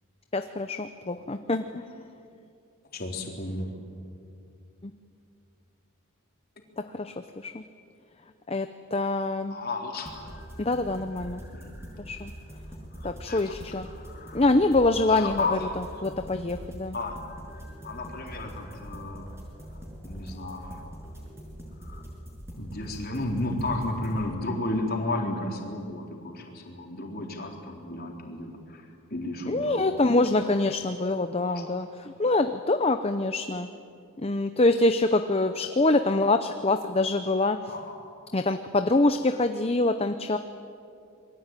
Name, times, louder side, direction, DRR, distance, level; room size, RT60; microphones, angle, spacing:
voice 1, 0.3-1.8 6.9-7.1 7.4-7.6 8.5-8.7 8.9-9.6 10.6-11.4 12.1-12.3 13.0-13.9 14.3-17.0 29.5-33.7 34.2-37.6 38.3-40.4, left 2 dB, 25° left, 8 dB, 0.7 m, -25 dB
voice 2, 2.9-3.7 9.5-10.4 11.5-11.7 12.9-13.6 13.9-14.4 15.1-15.6 15.9-16.0 16.9-17.2 17.8-19.3 20.0-20.9 21.8-22.0 22.6-30.2 31.4-31.7 32.0-32.1 37.7-38.0, left 2 dB, 45° left, 1 dB, 3.9 m, -33 dB
sound 1, 10.1-24.2, equal, 10° right, 6.2 m, -43 dB
27.5 x 22.0 x 9.1 m, 2.5 s
head